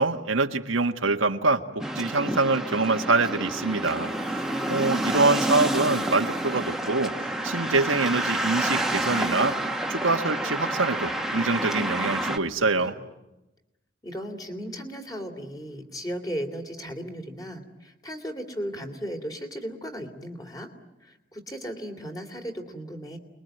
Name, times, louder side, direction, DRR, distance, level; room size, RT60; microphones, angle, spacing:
voice 1, 0.0-4.1 4.7-7.1 7.4-9.5 9.9-12.9, right 3 dB, 90° right, 5 dB, 1.6 m, -25 dB
sound 1, 1.8-12.4, right 1 dB, ahead, 1.5 m, -29 dB
voice 2, 3.8-5.4 12.4-13.0 14.0-20.7 21.0-23.2, equal, 20° left, 4 dB, 3.1 m, -37 dB
29.0 x 22.0 x 9.2 m, 0.97 s
head